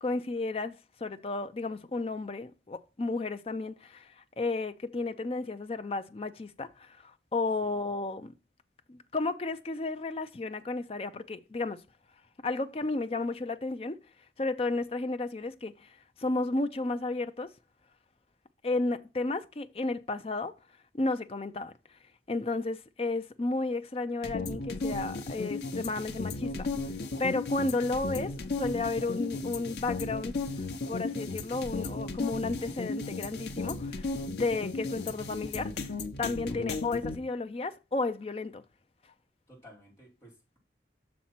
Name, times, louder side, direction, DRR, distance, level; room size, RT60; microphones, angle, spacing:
voice 1, 0.0-0.8 1.0-8.3 8.9-11.8 12.4-14.0 14.4-17.5 18.6-20.5 20.9-21.7 22.3-26.7 27.2-35.9 36.2-38.6, left 3 dB, 35° left, 0.5 m, -33 dB
sound 1, 24.2-37.1, left 3 dB, 70° left, 0.8 m, -35 dB
voice 2, 36.4-36.8 39.5-40.6, right 1 dB, 15° left, 3.1 m, -55 dB
6.4 x 4.2 x 5.8 m
head